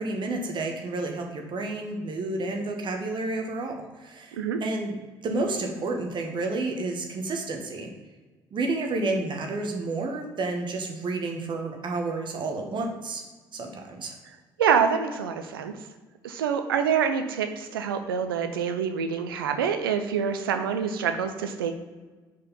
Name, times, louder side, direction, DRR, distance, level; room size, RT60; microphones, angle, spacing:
voice 1, 0.0-7.9 8.5-13.2 13.5-14.1, right 2 dB, 40° right, 2 dB, 1.2 m, -30 dB
voice 2, 14.6-15.8 16.2-21.7, right 7 dB, 75° right, 7 dB, 0.6 m, -26 dB
4.9 x 4.5 x 5.5 m, 1.3 s
figure-of-eight pair, 50°, 12 cm